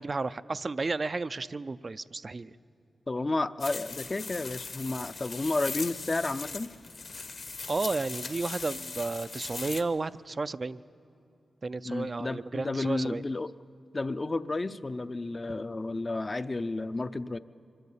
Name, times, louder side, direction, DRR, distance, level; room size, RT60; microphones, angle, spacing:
voice 1, 0.0-2.5 7.7-10.8 11.6-13.2, right 3 dB, 40° right, 15 dB, 0.4 m, -32 dB
voice 2, 3.1-6.7 11.8-13.5 13.9-17.4, left 2 dB, 35° left, 13 dB, 0.5 m, -32 dB
sound 1, 3.6-9.8, left 4 dB, 60° left, 1.1 m, -39 dB
24.5 x 12.5 x 8.7 m, 2.7 s
cardioid pair, 75°, 0 cm